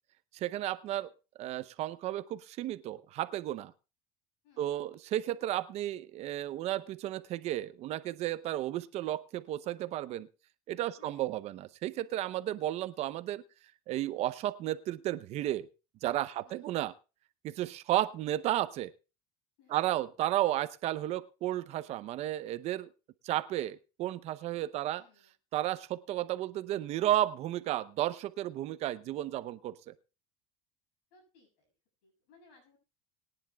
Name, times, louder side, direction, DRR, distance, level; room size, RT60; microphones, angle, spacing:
voice 1, 0.3-1.1 1.4-3.7 4.6-10.3 10.7-13.4 13.9-15.7 16.0-16.9 17.4-18.9 19.7-22.9 23.2-25.0 25.5-29.9, right 13 dB, 50° right, 0.6 m, -33 dB
voice 2, 4.4-4.8 11.0-11.3 16.4-16.7 19.6-19.9 24.8-25.3 31.1-31.7 32.0-32.8, left 4 dB, 75° left, 6.8 m, -63 dB
22.0 x 9.9 x 2.3 m
supercardioid pair, 130°, 14 cm